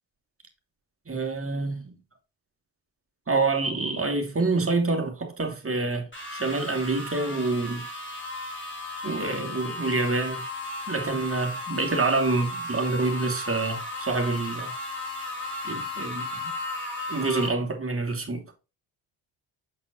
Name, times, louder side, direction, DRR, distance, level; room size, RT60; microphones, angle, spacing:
voice 1, 1.1-1.9 3.3-7.9 9.0-10.4 10.9-14.7 15.6-16.4 17.1-18.4, right 3 dB, 25° right, 2.7 m, -27 dB
sound 1, 6.1-17.5, left 2 dB, 25° left, 3.7 m, -35 dB
6.9 x 5.8 x 3.1 m
hypercardioid pair, 45°, 49 cm